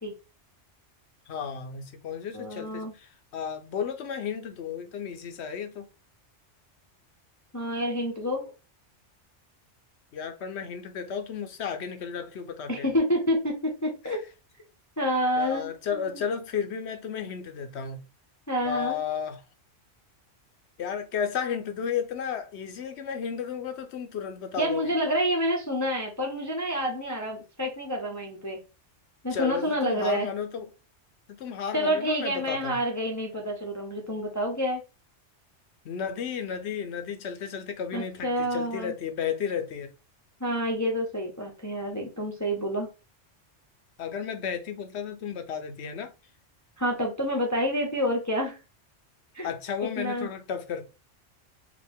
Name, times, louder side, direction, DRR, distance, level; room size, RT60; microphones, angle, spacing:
voice 1, 1.3-5.9 10.1-12.9 14.0-14.2 15.4-18.0 18.6-19.4 20.8-24.9 29.3-30.7 31.4-32.8 35.8-39.9 44.0-46.1 49.4-50.8, left 7 dB, 65° left, 0.9 m, -33 dB
voice 2, 2.3-2.9 7.5-8.5 12.7-14.2 15.0-15.7 16.0-16.1 18.5-19.0 24.6-28.6 29.2-30.3 31.7-34.8 37.9-38.9 40.4-42.9 46.8-48.6 49.3-49.5 49.8-50.3, equal, 15° left, 0.7 m, -28 dB
5.0 x 2.5 x 3.5 m
omnidirectional pair, 1.3 m